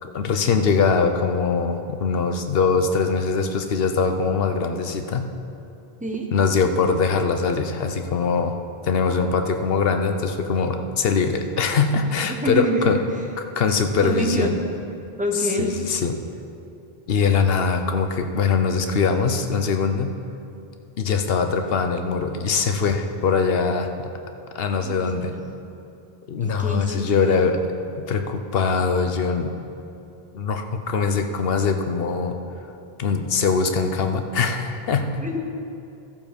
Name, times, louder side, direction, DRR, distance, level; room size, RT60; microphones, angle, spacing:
voice 1, 0.0-5.2 6.3-8.6 8.8-13.0 13.6-14.6 15.6-16.1 17.1-20.1 21.0-24.1 24.5-25.3 26.3-27.6 28.0-29.5 30.3-32.3 33.0-35.1, left 5 dB, 70° left, 6 dB, 1.0 m, -22 dB
voice 2, 12.4-12.9 14.0-14.6 15.2-15.8 24.8-25.5 26.4-27.4 35.2-35.4, equal, 10° right, 0 dB, 1.1 m, -26 dB
13.0 x 7.2 x 5.2 m, 2.7 s
omnidirectional pair, 1.1 m